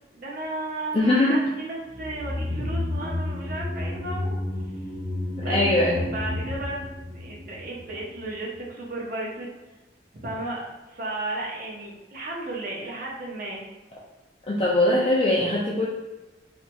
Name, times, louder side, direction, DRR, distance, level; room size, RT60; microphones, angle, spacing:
voice 1, 0.1-4.3 5.3-5.6 5.9-6.8 7.1-9.5 10.2-10.6 10.9-13.6, right 2 dB, 50° right, -4 dB, 0.9 m, -34 dB
voice 2, 0.9-1.4 5.4-6.1 14.5-15.9, left 1 dB, 30° left, -5 dB, 0.5 m, -21 dB
sound 1, 1.9-8.3 8.5-8.6, left 1 dB, 15° right, 0.7 m, -31 dB
4.4 x 2.8 x 2.3 m, 1.1 s
head